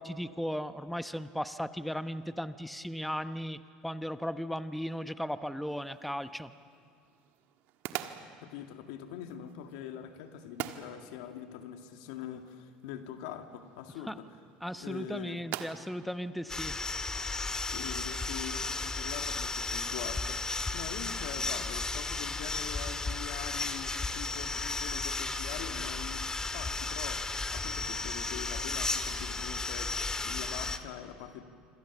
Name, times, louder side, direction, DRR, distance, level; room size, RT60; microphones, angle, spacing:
voice 1, 0.0-6.5 14.1-14.2 14.6-16.7, equal, ahead, 11 dB, 1.0 m, -36 dB
sound 1, 5.7-17.4, right 12 dB, 65° right, 1.6 m, -46 dB
voice 2, 8.4-14.4 14.8-15.4 17.6-31.4, left 9 dB, 75° left, 6 dB, 2.0 m, -43 dB
sound 2, 16.5-30.8, left 3 dB, 20° left, 1.9 m, -34 dB
27.0 x 26.0 x 7.2 m, 2.2 s
hypercardioid pair, 75°, 4 cm